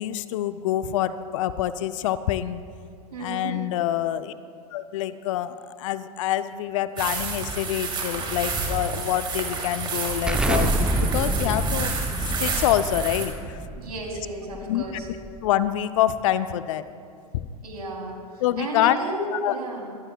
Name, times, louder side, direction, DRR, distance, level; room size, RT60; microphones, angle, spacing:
voice 1, 0.0-2.6 3.2-4.3 4.7-11.9 12.2-13.6 14.6-14.8 15.4-16.8 17.3-17.5 18.4-19.0 19.3-19.5, left 12 dB, 55° left, 12 dB, 0.6 m, -26 dB
voice 2, 3.1-3.6 13.8-15.1 17.6-20.0, right 1 dB, 75° right, 1 dB, 3.2 m, -33 dB
sound 1, 7.0-13.3, right 4 dB, 25° right, 2.7 m, -30 dB
Explosion, 10.3-15.7, right 1 dB, 5° right, 0.7 m, -27 dB
23.0 x 14.5 x 2.3 m, 2.4 s
figure-of-eight pair, 100°, 20 cm